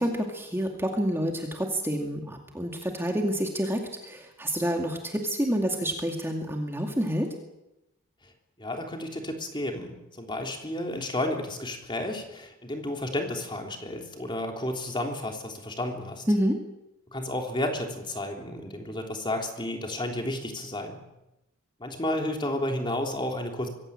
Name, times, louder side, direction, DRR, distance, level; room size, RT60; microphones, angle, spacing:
voice 1, 0.0-7.3 16.3-16.6, equal, 10° right, 2 dB, 2.3 m, -28 dB
voice 2, 8.6-16.2 17.1-21.0 21.8-23.7, left 1 dB, 20° left, 3 dB, 3.5 m, -32 dB
24.5 x 16.5 x 8.9 m, 0.93 s
head